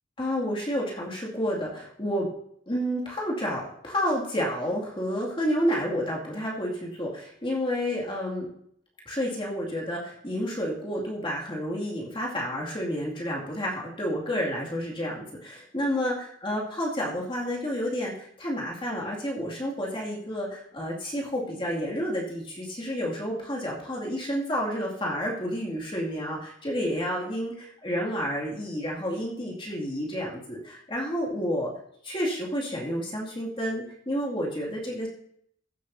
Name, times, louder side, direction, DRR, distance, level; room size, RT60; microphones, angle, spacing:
voice 1, 0.2-2.3 2.7-8.5 9.1-31.7 32.0-35.1, equal, 25° left, -3 dB, 2.3 m, -30 dB
15.5 x 8.2 x 2.7 m, 0.68 s
head